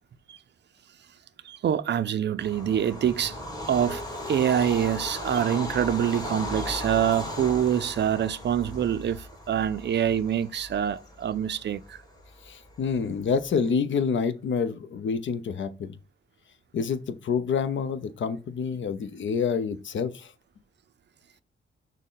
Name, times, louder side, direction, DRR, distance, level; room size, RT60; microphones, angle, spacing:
voice 1, 1.4-3.4 3.7-12.0, right 9 dB, 55° right, 0.4 m, -25 dB
Bird vocalization bird call bird song / Train, 2.4-13.6, left 1 dB, 15° left, 1.5 m, -37 dB
voice 2, 12.5-15.9 16.7-20.3, left 6 dB, 65° left, 0.6 m, -28 dB
6.3 x 2.1 x 3.8 m
cardioid pair, 90°, 21 cm